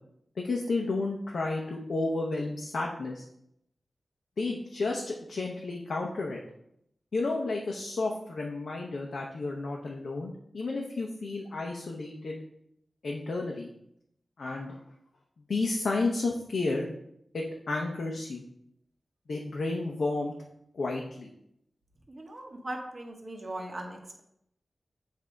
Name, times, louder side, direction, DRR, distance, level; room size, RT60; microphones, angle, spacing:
voice 1, 0.4-3.2 4.4-6.4 7.1-12.4 13.0-13.7 14.4-14.8 15.5-16.9 17.3-18.4 19.3-20.3 20.7-21.3, left 3 dB, 80° left, -1 dB, 0.7 m, -32 dB
voice 2, 22.1-24.2, right 1 dB, 40° right, 1 dB, 1.1 m, -39 dB
7.5 x 2.7 x 4.6 m, 0.76 s
wide cardioid pair, 75°, 0 cm